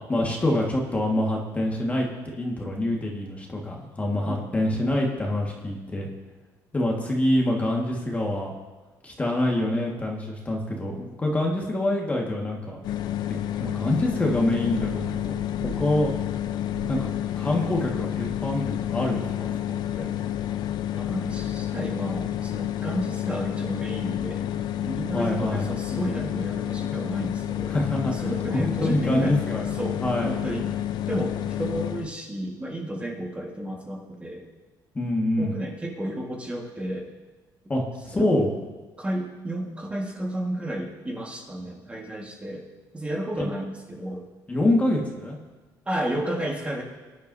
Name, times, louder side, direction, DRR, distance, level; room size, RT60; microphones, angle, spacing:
voice 1, 0.1-2.1 2.4-6.1 6.7-8.5 9.0-12.8 13.3-15.4 15.6-16.1 16.9-17.1 17.4-19.5 19.9-20.0 25.1-25.7 27.6-28.1 28.5-29.7 30.0-30.3 34.9-35.5 37.7-38.5 43.4-43.5 44.5-45.4, left 1 dB, 20° left, -1 dB, 1.7 m, -26 dB
voice 2, 4.3-4.6 21.0-24.5 24.8-27.7 28.1-29.4 29.7-30.7 31.1-34.5 35.4-37.1 38.1-38.4 39.0-42.7 42.9-44.3 45.8-46.8, right 1 dB, 15° right, 0 dB, 1.7 m, -32 dB
sound 1, 12.8-32.1, left 11 dB, 65° left, 0.6 m, -30 dB
sound 2, 13.6-19.0 19.3-21.0, equal, 65° right, 4.7 m, -44 dB
21.5 x 10.5 x 2.7 m, 1.3 s
cardioid pair, 125°, 8 cm